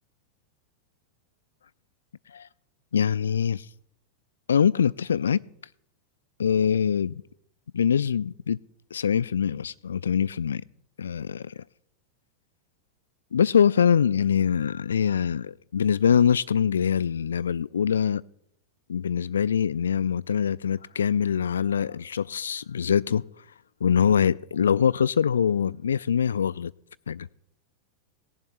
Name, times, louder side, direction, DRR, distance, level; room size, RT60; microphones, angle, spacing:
voice 1, 2.9-3.7 4.5-5.4 6.4-7.2 7.7-8.6 8.9-10.6 11.0-11.6 13.3-18.2 18.9-23.2 23.8-26.7 27.1-27.3, left 7 dB, 70° left, 0.3 m, -23 dB
19.0 x 7.4 x 3.1 m
figure-of-eight pair, 90°, 0 cm